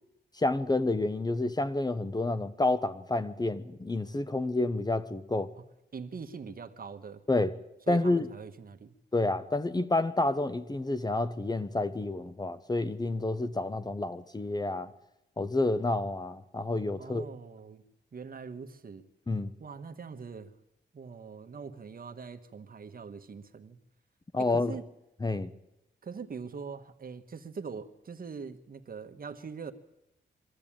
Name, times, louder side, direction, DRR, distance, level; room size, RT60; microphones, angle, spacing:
voice 1, 0.4-5.5 7.3-7.5 7.9-8.3 9.1-14.9 15.4-17.2 19.3-19.5 24.3-24.8 25.2-25.5, left 2 dB, 20° left, 0.9 m, -29 dB
voice 2, 5.9-7.2 7.9-8.9 17.0-17.8 18.1-19.1 19.6-20.5 20.9-23.8 24.4-24.9 26.0-29.7, right 5 dB, 50° right, 1.4 m, -42 dB
23.5 x 13.5 x 8.9 m
wide cardioid pair, 105°, 19 cm